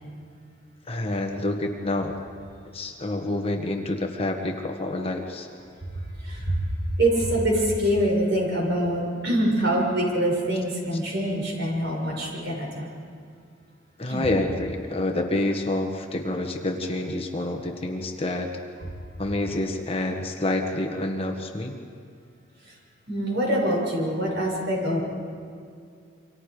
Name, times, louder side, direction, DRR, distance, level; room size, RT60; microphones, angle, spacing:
voice 1, 0.9-2.1 2.7-5.5 14.0-18.5 19.2-21.7, left 1 dB, 30° left, 2 dB, 1.5 m, -28 dB
voice 2, 6.2-6.7 7.0-12.8 14.1-14.3 22.7-22.8 23.1-25.0, right 1 dB, 55° right, -2 dB, 6.9 m, -24 dB
28.5 x 25.5 x 5.0 m, 2.3 s
head